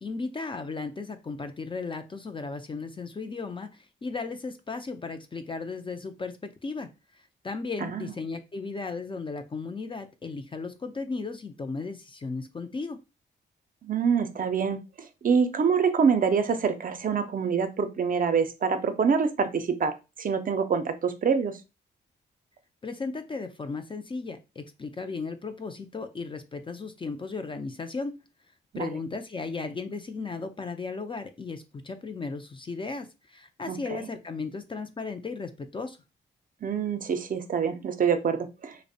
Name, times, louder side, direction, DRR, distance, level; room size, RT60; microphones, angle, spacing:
voice 1, 0.0-13.0 22.8-28.2 28.8-36.0, left 4 dB, 25° left, 8 dB, 0.3 m, -35 dB
voice 2, 13.8-14.8 15.2-21.6 28.7-28.9 33.7-33.8 36.6-38.8, right 6 dB, 45° right, 8 dB, 0.4 m, -25 dB
2.4 x 2.0 x 2.6 m, 0.27 s
cardioid pair, 60°, 19 cm